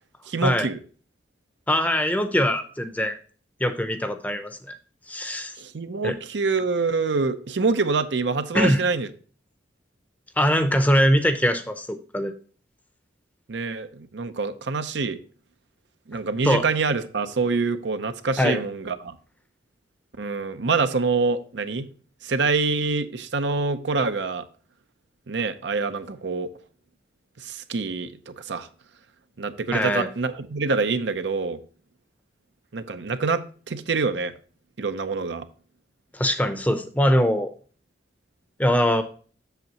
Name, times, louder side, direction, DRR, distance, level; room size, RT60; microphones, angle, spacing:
voice 1, 0.3-0.8 5.6-9.1 13.5-15.2 16.1-19.2 20.2-21.9 22.2-24.4 25.3-26.5 27.4-28.7 29.4-31.6 32.7-34.3 34.8-35.5, right 4 dB, 75° right, 10 dB, 0.7 m, -26 dB
voice 2, 1.7-3.2 3.6-4.8 5.1-5.5 6.0-6.2 8.5-8.8 10.4-12.3 16.4-16.6 18.4-18.6 29.7-30.1 36.1-37.5 38.6-39.0, equal, 10° left, 8 dB, 0.6 m, -22 dB
8.1 x 6.8 x 2.9 m, 0.41 s
head